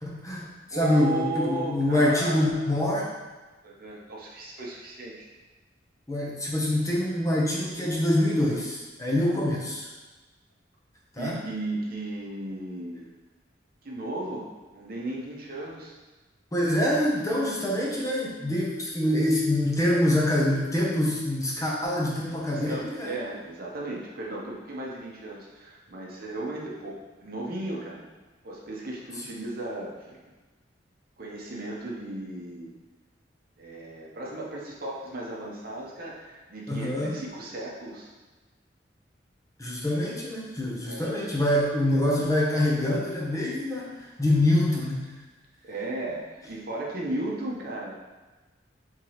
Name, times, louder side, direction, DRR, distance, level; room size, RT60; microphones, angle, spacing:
voice 1, 0.0-3.1 6.1-9.9 11.1-11.4 16.5-23.2 36.7-37.1 39.6-45.1, left 1 dB, 20° left, -4 dB, 0.7 m, -25 dB
voice 2, 0.7-2.7 3.6-5.3 11.2-13.1 13.8-14.5 14.7-15.9 22.5-28.0 28.4-30.2 31.2-32.7 33.6-38.1 40.8-41.2 45.6-48.1, right 2 dB, 50° right, -3 dB, 0.8 m, -35 dB
4.6 x 3.7 x 3.0 m, 1.2 s
head